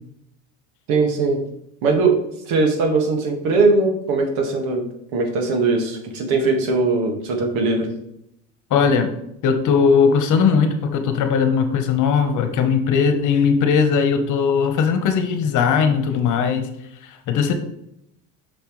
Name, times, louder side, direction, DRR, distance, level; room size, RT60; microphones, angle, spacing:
voice 1, 0.9-1.4 1.8-2.2 2.5-4.8 5.1-7.9, right 3 dB, 70° right, 3 dB, 1.9 m, -20 dB
voice 2, 8.7-9.1 9.4-16.6 17.0-17.5, left 6 dB, 55° left, 7 dB, 1.2 m, -18 dB
6.7 x 6.0 x 3.2 m, 0.78 s
supercardioid pair, 110°, 37 cm